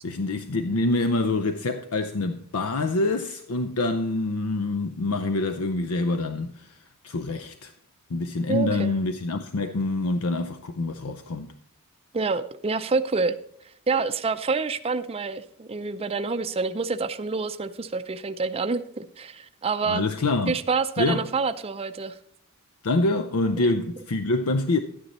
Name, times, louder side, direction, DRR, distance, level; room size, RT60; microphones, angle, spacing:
voice 1, 0.0-6.8 7.0-7.7 8.1-11.5 19.9-20.6 21.0-21.3 22.8-24.8, left 2 dB, 75° left, 0.6 m, -26 dB
voice 2, 8.5-8.9 12.1-13.4 13.9-20.1 20.5-22.2, right 4 dB, 25° right, 0.5 m, -27 dB
12.0 x 9.7 x 4.2 m
head